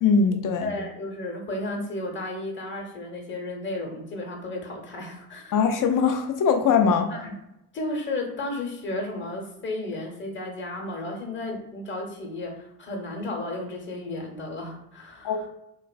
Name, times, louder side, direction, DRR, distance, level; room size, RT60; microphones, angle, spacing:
voice 1, 0.0-0.7 5.5-7.1 15.2-15.5, left 5 dB, 45° left, 6 dB, 0.6 m, -21 dB
voice 2, 0.6-5.6 7.1-7.3 7.7-15.3, left 2 dB, 25° left, 1 dB, 0.9 m, -33 dB
3.1 x 2.4 x 2.3 m, 0.84 s
hypercardioid pair, 65°, 48 cm